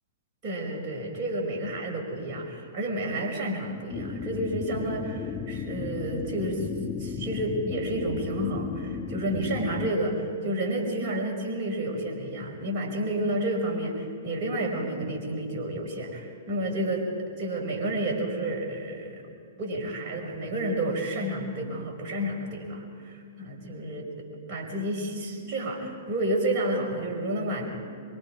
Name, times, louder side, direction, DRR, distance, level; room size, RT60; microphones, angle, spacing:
voice 1, 0.4-6.7 7.0-24.1 24.5-27.7, right 1 dB, 40° right, -1 dB, 5.9 m, -30 dB
sound 1, 3.9-9.9, left 6 dB, 25° left, 1.6 m, -35 dB
25.5 x 24.0 x 4.8 m, 2.3 s
figure-of-eight pair, 110°, 0 cm